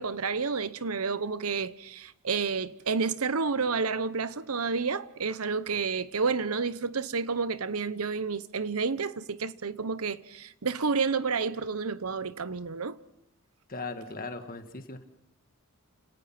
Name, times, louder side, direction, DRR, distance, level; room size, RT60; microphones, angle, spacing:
voice 1, 0.0-13.0, right 5 dB, 80° right, 0.9 m, -30 dB
voice 2, 13.7-15.0, left 3 dB, 40° left, 1.6 m, -38 dB
30.0 x 18.0 x 5.9 m
head